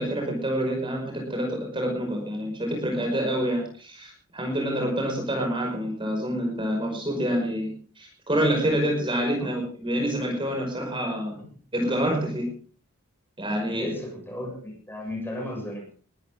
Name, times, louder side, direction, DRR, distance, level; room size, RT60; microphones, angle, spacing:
voice 1, 0.0-11.4 11.7-12.5 13.4-13.9, equal, 25° right, 2 dB, 5.5 m, -27 dB
voice 2, 13.7-15.9, left 1 dB, 10° left, 2 dB, 7.0 m, -35 dB
21.0 x 14.5 x 3.8 m, 0.40 s
head